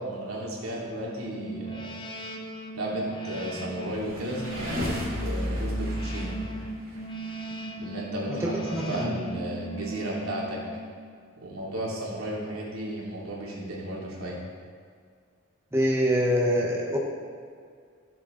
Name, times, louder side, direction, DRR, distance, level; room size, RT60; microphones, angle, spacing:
voice 1, 0.0-1.9 2.7-6.3 7.8-10.6 11.4-14.4, right 1 dB, 85° right, -5 dB, 2.9 m, -34 dB
sound 1, 1.2-11.1, right 2 dB, 25° left, 0.7 m, -38 dB
sound 2, 3.8-7.3, equal, 65° right, 3.0 m, -32 dB
voice 2, 8.3-9.1 15.7-17.0, equal, 10° right, -3 dB, 1.1 m, -25 dB
15.0 x 7.2 x 3.9 m, 2.1 s
head